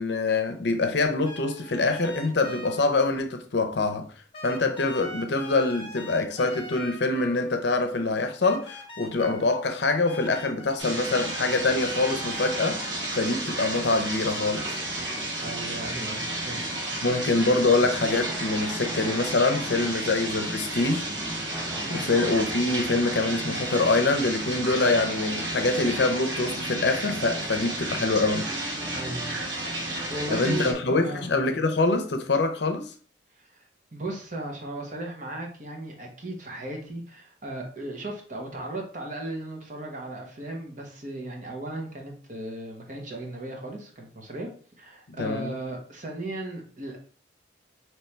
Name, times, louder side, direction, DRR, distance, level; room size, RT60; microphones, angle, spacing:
voice 1, 0.0-4.1 4.4-14.8 17.0-21.1 21.5-28.5 30.3-32.9 45.2-45.5, left 3 dB, 60° left, 0.6 m, -25 dB
sound 1, 1.3-3.0 4.3-7.7 8.4-13.4, left 1 dB, 25° left, 1.0 m, -42 dB
sound 2, 10.8-30.7, right 1 dB, 65° right, 1.5 m, -32 dB
sound 3, 14.8-30.7, right 1 dB, 5° right, 1.0 m, -41 dB
voice 2, 15.4-17.2 21.7-22.0 28.9-30.8 31.0-31.3 33.4-44.5 44.8-47.0, right 2 dB, 40° right, 0.9 m, -37 dB
4.3 x 3.1 x 3.3 m
head